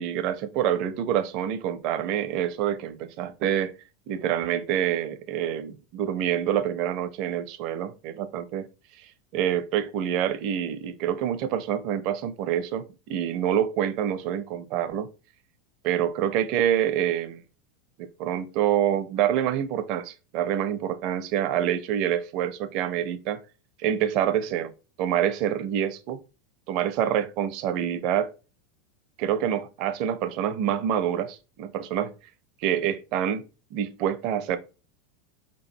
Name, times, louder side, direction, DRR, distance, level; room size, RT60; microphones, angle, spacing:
voice 1, 0.0-3.7 4.1-8.7 9.3-15.1 15.8-17.4 18.0-23.4 23.8-24.7 25.0-26.2 26.7-28.3 29.2-32.1 32.6-34.6, right 10 dB, 40° right, 0.5 m, -26 dB
4.7 x 3.0 x 2.7 m
supercardioid pair, 170°, 0 cm